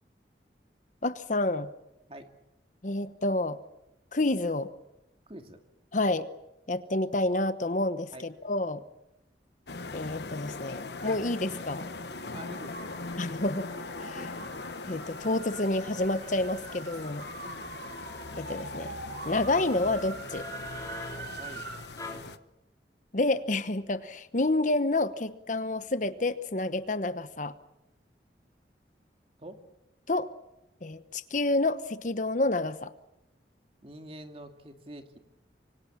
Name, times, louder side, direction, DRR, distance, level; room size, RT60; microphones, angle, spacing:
voice 1, 1.0-1.7 2.8-3.6 4.1-4.7 5.9-6.3 6.7-8.8 9.9-11.9 13.2-13.7 14.0-14.3 14.9-17.3 18.4-18.9 19.2-20.5 23.1-27.6 30.1-30.3 30.8-32.9, left 2 dB, 45° left, 12 dB, 1.0 m, -29 dB
voice 2, 5.3-5.6 8.1-8.3 12.3-13.1 14.3-14.6 17.4-17.7 21.2-22.3 29.4-29.6 33.8-35.2, right 1 dB, 30° right, 6 dB, 2.4 m, -47 dB
sound 1, 9.7-22.4, left 3 dB, 70° left, 1.1 m, -41 dB
sound 2, 10.9-21.8, right 3 dB, 60° right, 4.2 m, -44 dB
sound 3, 12.6-22.2, left 2 dB, 20° left, 3.7 m, -49 dB
25.5 x 25.0 x 7.4 m, 0.88 s
head